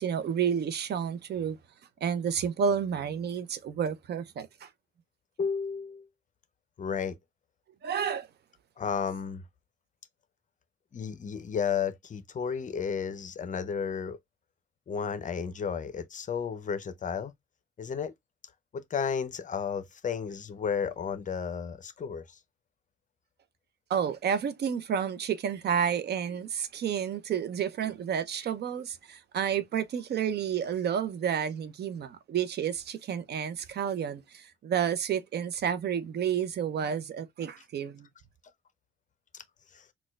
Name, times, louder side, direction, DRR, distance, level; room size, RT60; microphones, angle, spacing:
voice 1, 0.0-1.6 2.0-4.7 7.8-8.3 23.9-38.1, right 8 dB, 55° right, 0.6 m, -30 dB
voice 2, 5.4-6.1 6.8-7.2 8.8-9.4 10.9-14.2 14.9-17.3 17.8-18.1 18.7-22.4 39.3-39.4 39.7-39.8, left 6 dB, 40° left, 0.5 m, -33 dB
4.2 x 2.3 x 2.2 m
cardioid pair, 90°, 20 cm